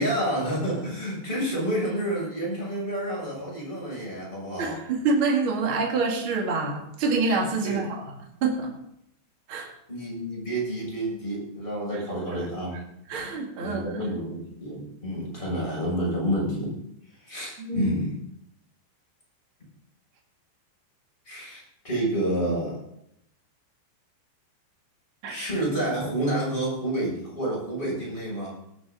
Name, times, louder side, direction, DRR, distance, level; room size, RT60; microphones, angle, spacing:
voice 1, 0.0-4.8 7.6-7.8 9.9-12.8 13.3-16.8 17.2-18.1 21.3-22.8 25.2-28.5, right 1 dB, 10° left, -5 dB, 7.3 m, -29 dB
voice 2, 4.6-8.0 8.4-8.7 9.5-9.7 13.1-14.2 17.6-17.9 25.2-25.4, right 3 dB, 40° right, 2 dB, 2.1 m, -26 dB
18.5 x 10.5 x 4.0 m, 0.75 s
omnidirectional pair, 5.3 m